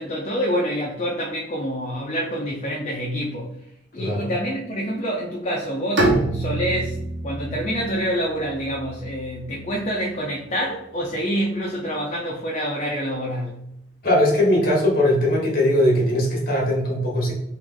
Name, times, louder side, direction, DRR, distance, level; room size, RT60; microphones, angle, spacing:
voice 1, 0.0-3.5 3.9-7.0 7.2-13.6, equal, 35° left, -2 dB, 0.5 m, -27 dB
voice 2, 4.0-4.3 14.0-17.3, left 1 dB, 55° left, -2 dB, 1.4 m, -20 dB
Bowed string instrument, 6.0-9.9, right 2 dB, 80° right, 1.1 m, -27 dB
3.3 x 3.0 x 3.7 m, 0.79 s
head